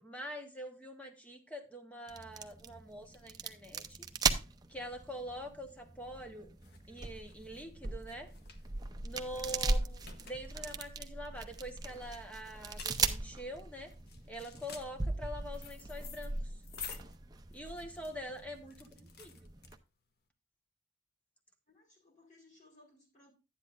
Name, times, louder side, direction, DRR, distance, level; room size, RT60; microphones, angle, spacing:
voice 1, 0.0-4.0 4.7-6.5 6.9-8.3 9.0-10.0 10.3-13.9 14.3-16.6 17.5-19.5, equal, 5° left, 5 dB, 1.2 m, -45 dB
sound 1, 2.1-19.8, right 4 dB, 20° right, 0.6 m, -39 dB
sound 2, 5.8-20.2, left 6 dB, 55° left, 1.0 m, -52 dB
voice 2, 21.7-23.3, left 2 dB, 40° left, -1 dB, 5.0 m, -63 dB
11.5 x 9.8 x 2.5 m, 0.29 s
head